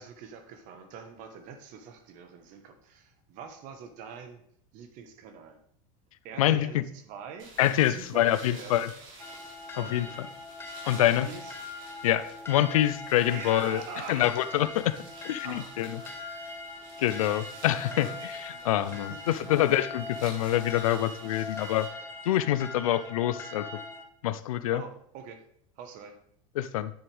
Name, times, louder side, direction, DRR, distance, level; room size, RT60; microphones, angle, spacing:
voice 1, 0.0-4.4 4.7-5.6 6.2-7.5 7.8-8.8 9.7-10.4 10.9-11.6 13.3-14.3 15.4-16.5 17.8-19.4 21.2-21.7 24.7-25.4 25.8-26.2, right 6 dB, 50° right, 7 dB, 1.3 m, -45 dB
voice 2, 6.4-6.8 7.6-8.9 9.8-10.3 10.8-11.3 12.0-13.8 14.1-14.9 15.2-15.9 17.0-21.9 22.3-23.7 24.2-24.8 26.6-26.9, left 13 dB, 90° left, 14 dB, 0.6 m, -26 dB
sound 1, 7.4-21.9, right 3 dB, 80° right, 3.7 m, -51 dB
sound 2, 9.2-24.0, left 3 dB, 15° left, 1.0 m, -41 dB
9.7 x 7.3 x 3.5 m, 0.67 s
supercardioid pair, 125°, 17 cm